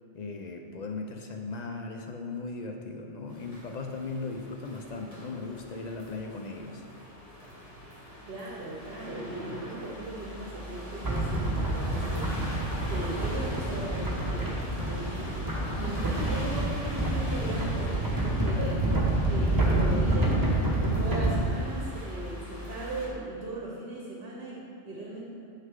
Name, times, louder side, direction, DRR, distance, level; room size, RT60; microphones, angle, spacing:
voice 1, 0.1-6.8, left 3 dB, 60° left, 3 dB, 0.4 m, -37 dB
sound 1, 3.3-23.1, left 1 dB, 30° left, 1.4 m, -41 dB
voice 2, 8.3-12.2 12.9-15.3 15.7-18.0 18.2-18.9 19.2-20.4 21.0-25.2, right 2 dB, 55° right, -3 dB, 1.1 m, -38 dB
sound 2, 11.0-21.3, right 1 dB, 20° right, 1.0 m, -28 dB
6.5 x 6.3 x 3.7 m, 2.4 s
omnidirectional pair, 1.2 m